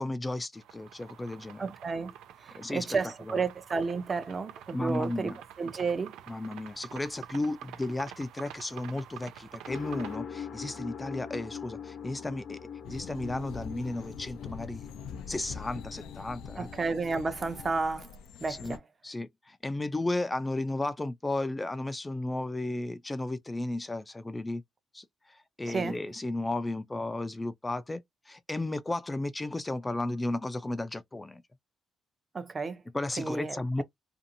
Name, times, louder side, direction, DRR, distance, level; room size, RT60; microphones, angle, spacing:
voice 1, 0.0-1.7 2.5-2.9 3.3-3.4 4.7-5.4 6.3-12.6 12.9-14.9 15.3-16.7 18.5-18.8 19.0-24.6 24.9-31.4 32.9-33.8, left 2 dB, 20° left, 0.4 m, -34 dB
sound 1, 0.5-10.2, right 11 dB, 85° right, 0.3 m, -48 dB
voice 2, 1.6-2.1 2.4-6.2 16.6-18.1 18.4-18.8 25.6-26.0 32.3-32.8 33.2-33.8, right 4 dB, 40° right, 0.6 m, -32 dB
sound 2, 9.7-17.8, left 7 dB, 65° left, 0.8 m, -43 dB
sound 3, 12.8-18.8, left 7 dB, 80° left, 0.4 m, -44 dB
2.6 x 2.4 x 2.6 m
supercardioid pair, 60°, 0 cm